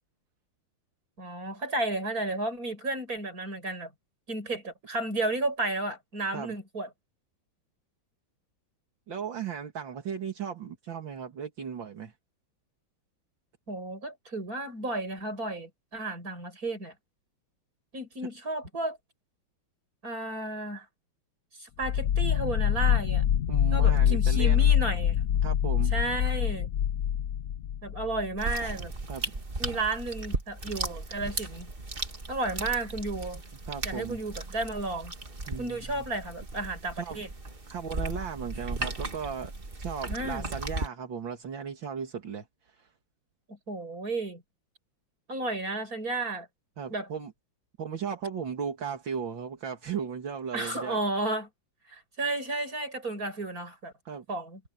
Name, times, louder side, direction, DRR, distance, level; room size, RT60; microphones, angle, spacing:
voice 1, 1.2-3.9 4.3-6.9 13.7-16.9 17.9-19.0 20.0-20.9 21.6-23.2 23.7-25.2 25.9-26.7 27.8-28.9 29.6-31.7 32.3-33.4 33.8-35.1 35.6-37.3 40.1-40.5 43.5-44.4 45.3-46.5 46.9-47.1 50.5-51.5 51.9-53.9 54.3-54.6, right 2 dB, 45° right, 7.5 m, -33 dB
voice 2, 9.1-12.1 23.5-24.7 25.4-25.9 29.1-29.4 33.7-34.2 35.5-36.0 36.9-37.2 37.7-39.5 39.8-42.9 46.8-47.3 47.8-51.0 54.0-54.2, right 7 dB, 65° right, 3.0 m, -36 dB
sound 1, 21.8-28.5, left 9 dB, 85° left, 0.6 m, -25 dB
sound 2, 28.4-40.9, right 2 dB, 25° right, 2.2 m, -36 dB
omnidirectional pair, 2.2 m